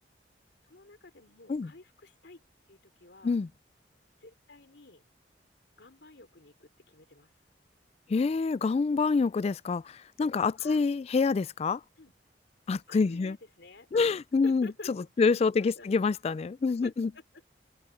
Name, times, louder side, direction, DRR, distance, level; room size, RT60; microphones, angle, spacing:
voice 1, 0.6-2.4 2.7-3.4 4.2-5.0 5.8-7.3 10.6-10.9 12.0-12.1 12.9-14.1 14.4-14.9 15.2-16.0 16.7-17.5, left 2 dB, 80° left, 3.2 m, -51 dB
voice 2, 8.1-11.8 12.7-13.4 13.9-14.7 15.2-17.1, left 4 dB, 35° left, 0.3 m, -26 dB
head